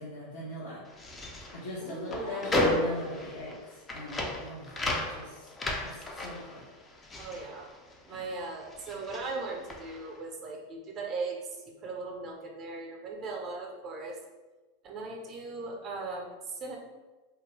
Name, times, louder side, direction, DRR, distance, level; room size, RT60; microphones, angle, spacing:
voice 1, 0.0-5.5 5.8-6.6 7.0-7.3 8.1-8.3, left 1 dB, 75° left, -8 dB, 0.8 m, -41 dB
sound 1, 0.9-8.4 8.6-10.1, left 1 dB, 20° left, 0.4 m, -34 dB
voice 2, 1.8-2.4 3.1-3.4 7.2-7.7 8.1-14.2 14.8-16.8, right 3 dB, 40° right, 1 dB, 0.6 m, -39 dB
2.6 x 2.3 x 3.1 m, 1.2 s
hypercardioid pair, 110°, 0 cm